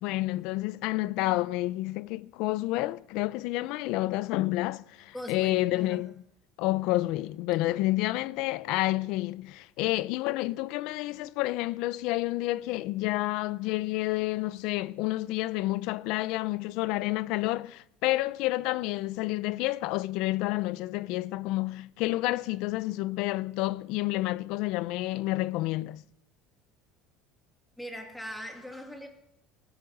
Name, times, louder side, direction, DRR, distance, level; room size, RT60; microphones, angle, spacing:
voice 1, 0.0-6.1 6.6-26.0, left 18 dB, 60° left, 0.5 m, -29 dB
voice 2, 5.1-6.0 27.8-29.1, equal, 5° left, 2.3 m, -40 dB
19.0 x 9.6 x 6.5 m
cardioid pair, 165°, 0 cm